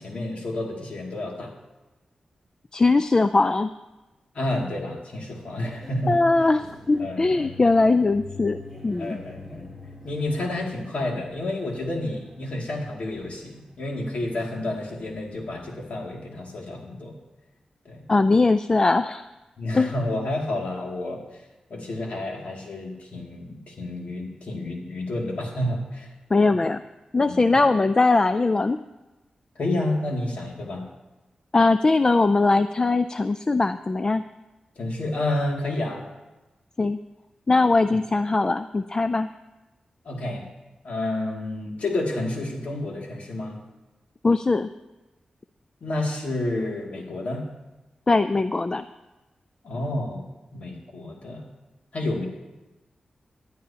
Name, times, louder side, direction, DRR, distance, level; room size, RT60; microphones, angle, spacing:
voice 1, 0.0-1.5 4.3-6.1 7.0-7.5 9.0-9.7 10.0-17.1 17.9-18.0 19.6-21.2 21.7-26.1 26.5-26.6 27.3-27.6 29.6-30.8 34.8-36.0 40.1-40.4 40.8-43.6 45.8-47.4 49.6-50.2 50.5-51.5 51.9-52.3, left 1 dB, 70° left, -1 dB, 2.4 m, -30 dB
voice 2, 2.7-3.7 6.1-8.6 8.8-9.2 18.1-19.3 19.7-19.9 26.3-26.8 27.1-28.8 31.5-34.2 36.8-37.0 37.5-39.3 44.2-44.7 48.1-48.8, left 3 dB, 30° left, 11 dB, 0.3 m, -20 dB
sound 1, 5.4-16.5, left 3 dB, 5° left, 2.1 m, -46 dB
18.5 x 11.0 x 2.9 m, 1.1 s
wide cardioid pair, 95°, 2 cm